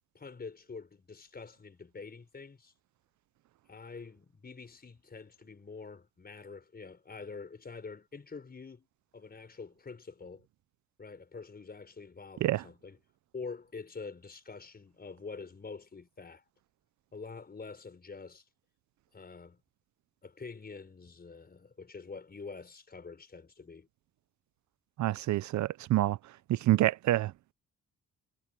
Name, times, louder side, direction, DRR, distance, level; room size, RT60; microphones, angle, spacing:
voice 1, 0.1-2.7 3.7-8.9 9.1-10.5 11.0-13.0 13.3-16.4 17.1-18.4 19.1-19.6 20.2-23.9, left 4 dB, 30° left, 5.1 m, -46 dB
voice 2, 25.0-26.2 26.5-27.5, right 15 dB, 70° right, 0.6 m, -27 dB
cardioid pair, 90°, 30 cm